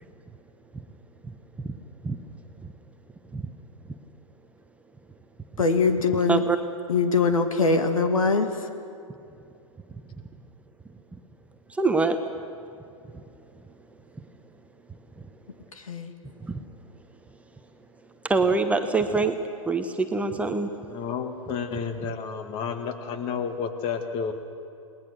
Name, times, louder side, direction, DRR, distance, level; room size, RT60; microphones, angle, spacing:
voice 1, 5.6-6.4 6.9-8.5 15.9-16.1, left 4 dB, 70° left, 6 dB, 2.2 m, -22 dB
voice 2, 11.7-12.2 16.4-16.5 18.2-19.4 19.7-20.7, right 3 dB, 5° right, 6 dB, 1.0 m, -24 dB
voice 3, 20.9-24.3, left 6 dB, 30° left, 7 dB, 2.1 m, -31 dB
29.0 x 20.0 x 6.5 m, 2.5 s
figure-of-eight pair, 110°, 18 cm